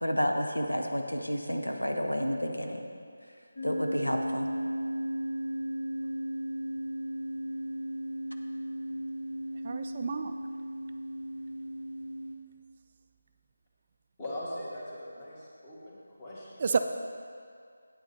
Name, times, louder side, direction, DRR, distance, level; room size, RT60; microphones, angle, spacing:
voice 1, 0.0-2.9 3.6-4.5, equal, 90° left, 3 dB, 0.9 m, -30 dB
sound 1, 3.6-12.4, equal, 55° left, 1.5 m, -35 dB
voice 2, 9.6-10.3 16.6-16.8, right 5 dB, 35° right, 7 dB, 0.3 m, -29 dB
voice 3, 14.2-16.6, left 1 dB, 25° left, -7 dB, 2.3 m, -40 dB
8.9 x 8.7 x 4.2 m, 2.2 s
figure-of-eight pair, 160°, 0 cm